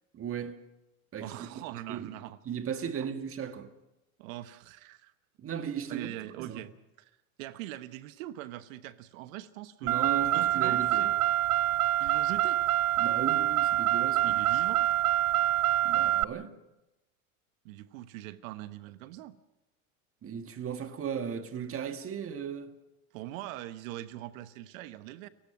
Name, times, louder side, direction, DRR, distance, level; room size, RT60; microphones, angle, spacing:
voice 1, 0.1-0.7 1.1-2.2 2.4-3.7 5.4-6.1 6.4-6.6 9.8-11.1 13.0-14.4 15.8-16.5 20.2-22.7, right 8 dB, 30° right, 1.8 m, -36 dB
voice 2, 1.2-2.4 3.0-3.1 4.2-5.1 5.9-6.7 7.0-7.1 7.4-10.0 10.3-11.1 12.0-12.6 14.2-14.9 17.6-19.4 23.1-25.3, right 15 dB, 65° right, 1.2 m, -42 dB
Car, 9.9-16.2, right 13 dB, 85° right, 0.6 m, -26 dB
30.0 x 16.0 x 6.0 m
hypercardioid pair, 95°, 43 cm